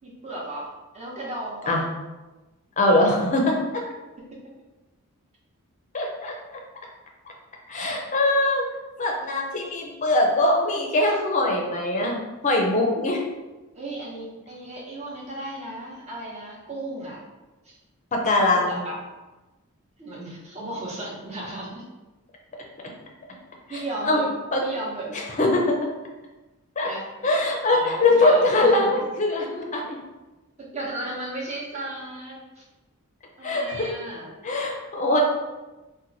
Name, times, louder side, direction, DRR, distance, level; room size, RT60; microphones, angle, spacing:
voice 1, 0.0-1.8 13.7-17.2 17.6-17.7 18.5-19.0 20.0-21.8 23.7-24.3 24.6-25.1 26.8-27.1 27.7-28.9 30.7-32.6 33.4-34.3, right 1 dB, 30° right, -5 dB, 0.9 m, -35 dB
voice 2, 2.8-3.6 5.9-6.3 7.7-8.6 9.0-12.2 12.4-13.2 18.1-18.8 24.1-24.2 24.5-24.6 25.1-25.8 26.8-26.9 27.2-30.0 33.4-33.9 34.4-35.2, left 2 dB, 35° left, 0 dB, 0.5 m, -22 dB
2.9 x 2.2 x 3.9 m, 1.1 s
head